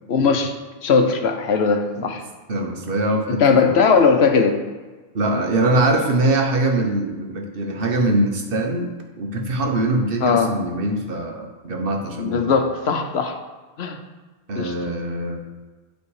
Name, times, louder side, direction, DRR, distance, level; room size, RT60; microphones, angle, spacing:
voice 1, 0.1-0.5 0.8-2.2 3.3-4.6 10.2-10.5 12.2-13.4 13.8-14.0 14.6-14.7, left 5 dB, 85° left, 6 dB, 1.0 m, -18 dB
voice 2, 2.5-3.9 5.1-8.9 9.2-12.6 14.5-15.4, right 2 dB, 60° right, 2 dB, 1.2 m, -22 dB
9.8 x 3.5 x 4.8 m, 1.3 s
omnidirectional pair, 1.1 m